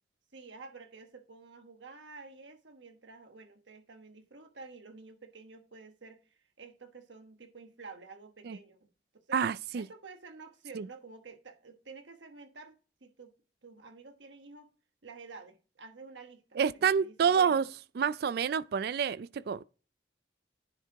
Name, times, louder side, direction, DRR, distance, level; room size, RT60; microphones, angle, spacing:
voice 1, 0.3-9.5 9.7-13.3 13.6-14.7 15.0-17.7, right 4 dB, 90° right, 1.2 m, -50 dB
voice 2, 9.3-9.9 10.7-10.9 16.6-17.6 18.0-19.6, right 7 dB, 60° right, 0.3 m, -28 dB
10.0 x 4.5 x 3.6 m
head